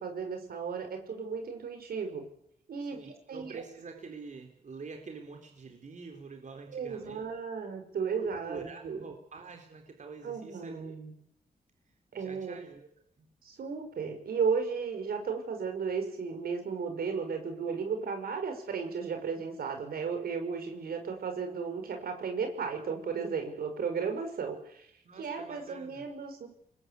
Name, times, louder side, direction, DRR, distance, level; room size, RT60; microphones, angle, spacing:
voice 1, 0.0-2.2 2.7-3.6 6.7-9.1 10.2-11.1 12.1-12.6 13.4-24.9 25.2-26.5, right 5 dB, 80° right, 5 dB, 5.4 m, -34 dB
voice 2, 2.9-7.2 8.2-10.9 12.1-12.9 13.2-13.3 25.0-26.1, right 4 dB, 50° right, 3 dB, 3.9 m, -46 dB
24.5 x 21.0 x 8.4 m, 0.72 s
cardioid pair, 80°, 16 cm